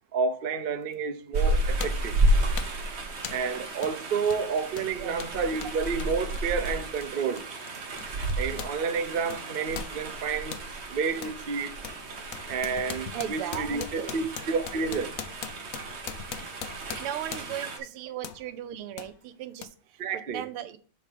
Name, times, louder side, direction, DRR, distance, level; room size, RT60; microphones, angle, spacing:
voice 1, 0.1-2.2 3.3-7.5 8.4-10.6 10.9-11.7 12.5-15.1 20.0-20.4, right 5 dB, 60° right, 0.5 m, -30 dB
sound 1, 0.9-1.1 1.8-2.1 2.6-2.8 3.2-3.5 3.8-4.0 4.3-8.8 9.0-10.7 11.2-11.4 11.8-17.7 18.2-18.4 19.0-19.1 19.6-19.7, left 9 dB, 90° left, 0.7 m, -41 dB
sound 2, 1.3-17.8, right 1 dB, 40° right, 1.1 m, -32 dB
voice 2, 4.9-5.4 13.1-14.2 14.5-14.6 16.9-20.8, right 11 dB, 85° right, 1.7 m, -37 dB
7.0 x 4.2 x 5.1 m
omnidirectional pair, 2.3 m